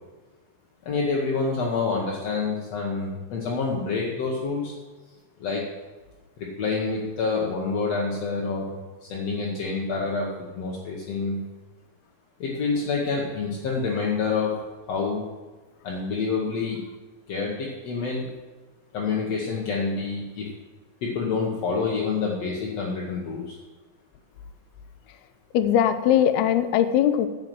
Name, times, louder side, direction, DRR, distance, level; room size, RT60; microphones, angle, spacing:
voice 1, 0.8-4.7 5.4-5.6 6.4-11.4 12.4-14.5 14.9-15.2 15.8-16.8 17.3-18.3 18.9-20.5 21.0-23.6, left 4 dB, 65° left, -2 dB, 1.7 m, -27 dB
voice 2, 25.5-27.3, left 10 dB, 85° left, 10 dB, 2.6 m, -20 dB
10.5 x 6.2 x 7.6 m, 1.3 s
omnidirectional pair, 4.5 m